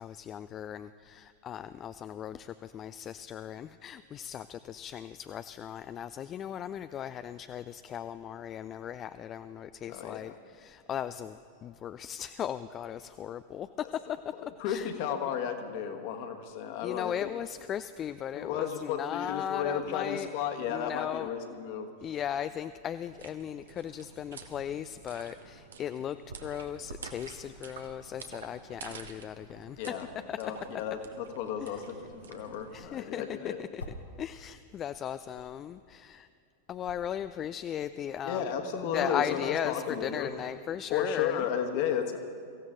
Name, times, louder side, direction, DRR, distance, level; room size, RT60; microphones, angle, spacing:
voice 1, 0.0-14.3 14.6-14.9 16.8-20.3 20.6-21.3 22.0-29.8 30.3-30.7 31.6-31.8 32.7-36.3 36.7-41.5, left 9 dB, 30° left, 12 dB, 0.4 m, -37 dB
voice 2, 9.9-10.3 13.8-13.9 14.6-17.3 18.3-21.9 29.8-30.0 30.4-33.6 38.2-40.3 40.9-42.2, left 8 dB, 45° left, 6 dB, 1.5 m, -33 dB
sound 1, 23.1-32.9, right 5 dB, 65° right, 1.2 m, -48 dB
sound 2, 33.8-34.3 34.5-38.2, left 1 dB, 75° left, 1.4 m, -49 dB
23.5 x 15.5 x 3.8 m, 2.4 s
figure-of-eight pair, 90°, 0 cm